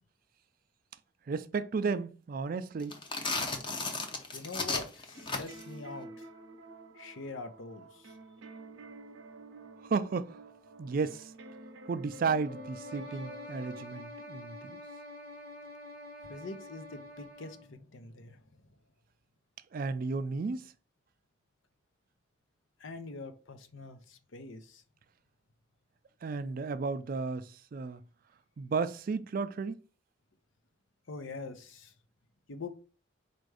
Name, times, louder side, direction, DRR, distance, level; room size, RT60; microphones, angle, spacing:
voice 1, 1.3-3.0 9.8-10.4 10.8-11.3 11.9-14.8 19.7-20.7 26.2-28.0 28.6-29.8, right 4 dB, 45° right, 0.3 m, -33 dB
sound 1, 2.8-5.7, left 3 dB, 25° left, 0.6 m, -34 dB
voice 2, 3.7-6.3 6.9-8.2 16.2-18.4 22.8-24.8 31.1-31.9 32.5-32.7, left 3 dB, 75° left, 0.7 m, -44 dB
sound 2, 5.1-13.8, right 1 dB, 70° right, 0.7 m, -50 dB
sound 3, 12.3-17.7, left 1 dB, 45° left, 1.1 m, -47 dB
4.4 x 2.6 x 4.7 m
head